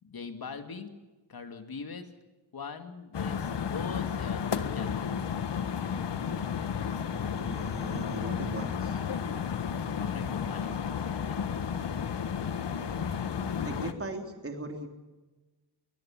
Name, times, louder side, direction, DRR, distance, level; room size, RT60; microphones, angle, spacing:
voice 1, 0.0-0.9 1.3-2.1 2.5-5.1 10.0-11.4, left 5 dB, 60° left, 7 dB, 2.6 m, -42 dB
sound 1, 3.1-13.9, left 7 dB, 85° left, 1.5 m, -32 dB
voice 2, 7.3-9.0 13.0-13.1 13.6-14.9, right 2 dB, 35° right, 3 dB, 3.5 m, -39 dB
23.0 x 20.5 x 7.4 m, 1.2 s
wide cardioid pair, 145°, 41 cm